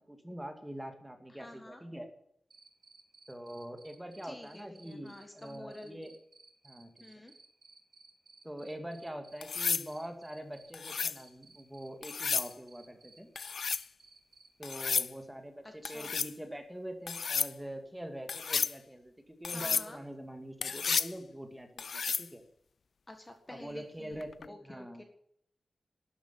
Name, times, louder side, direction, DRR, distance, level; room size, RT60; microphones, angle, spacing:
voice 1, 0.0-2.1 3.3-6.2 6.6-6.9 7.2-7.3 8.4-13.3 14.6-22.4 23.5-25.0, equal, 5° right, 6 dB, 2.2 m, -44 dB
voice 2, 1.3-1.8 4.2-6.0 7.0-7.3 15.8-16.1 19.5-20.0 23.1-25.0, left 1 dB, 15° left, 5 dB, 1.8 m, -49 dB
Cricket, 2.5-14.5, right 3 dB, 45° right, 3.4 m, -58 dB
sound 1, 9.4-9.9 10.7-11.2 12.0-12.5 13.4-13.8 14.6-15.1 15.8-16.3 17.1-17.5 18.3-18.7 19.4-19.9 20.6-21.1 21.8-22.3 24.2-24.5, left 5 dB, 70° left, 0.5 m, -32 dB
12.5 x 10.0 x 9.6 m, 0.71 s
wide cardioid pair, 155°, 0 cm